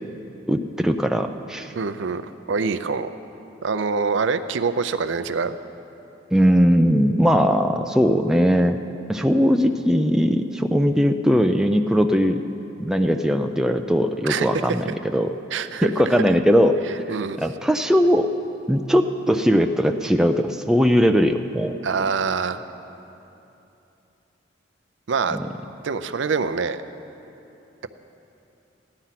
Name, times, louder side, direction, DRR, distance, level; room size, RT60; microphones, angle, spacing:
voice 1, 0.5-1.7 6.3-8.8 9.1-12.4 12.8-15.3 15.8-16.8 17.4-18.3 18.7-21.8 25.3-25.5, equal, 5° right, 5 dB, 0.3 m, -19 dB
voice 2, 1.8-3.1 3.6-5.6 14.2-14.5 15.5-15.9 17.1-17.4 21.8-22.6 25.1-25.4 25.8-26.8, right 5 dB, 65° right, 11 dB, 0.5 m, -25 dB
15.5 x 10.5 x 5.8 m, 3.0 s
head